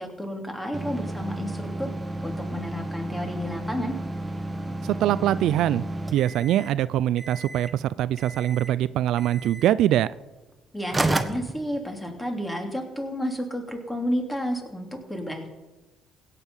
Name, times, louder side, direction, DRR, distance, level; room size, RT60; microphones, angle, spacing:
voice 1, 0.0-1.9 2.2-3.9 10.7-15.5, equal, 10° left, 4 dB, 3.0 m, -31 dB
sound 1, 0.7-6.8 7.2-7.8 8.2-8.8 9.2-9.7 10.5-10.6 10.9-12.2, right 2 dB, 15° right, 1.2 m, -32 dB
voice 2, 4.8-5.8 6.1-10.1, right 12 dB, 75° right, 18 dB, 0.3 m, -23 dB
16.5 x 8.2 x 5.6 m, 1.1 s
supercardioid pair, 70°, 0 cm